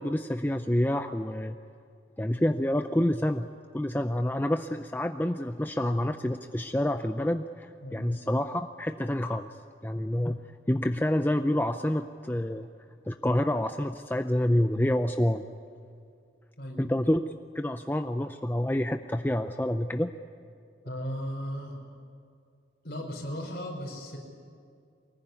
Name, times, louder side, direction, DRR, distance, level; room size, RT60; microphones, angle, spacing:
voice 1, 0.0-1.6 2.2-3.5 3.7-9.5 9.8-10.4 10.7-12.7 13.1-15.4 16.8-17.3 17.5-20.1, left 1 dB, 10° left, 7 dB, 0.5 m, -28 dB
voice 2, 20.8-21.8 22.8-24.2, equal, 55° left, 1 dB, 5.2 m, -36 dB
24.0 x 20.0 x 9.6 m, 2.3 s
head